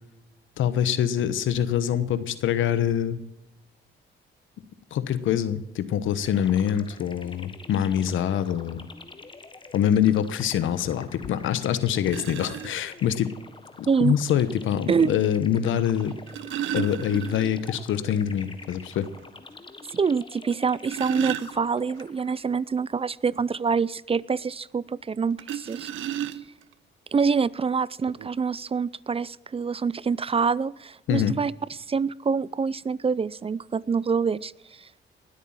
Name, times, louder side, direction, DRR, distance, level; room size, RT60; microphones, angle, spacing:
voice 1, 0.6-3.2 4.9-8.9 9.7-13.3 13.8-16.1 16.7-19.1 31.1-31.3, left 9 dB, 80° left, 14 dB, 1.2 m, -25 dB
sound 1, 6.2-22.6, left 3 dB, 25° left, 1.4 m, -46 dB
sound 2, 11.4-11.5 12.1-12.7 14.1-14.2 16.0-17.7 18.1-18.2 18.6-18.7 19.2-19.3 20.5-22.0 25.4-26.7 27.6-27.7 28.1-28.3, right 11 dB, 80° right, 0.9 m, -33 dB
voice 2, 19.9-25.9 27.1-31.5 31.9-34.5 34.8-34.9, right 5 dB, 30° right, 22 dB, 0.5 m, -26 dB
19.5 x 8.3 x 7.4 m, 0.91 s
cardioid pair, 75°, 20 cm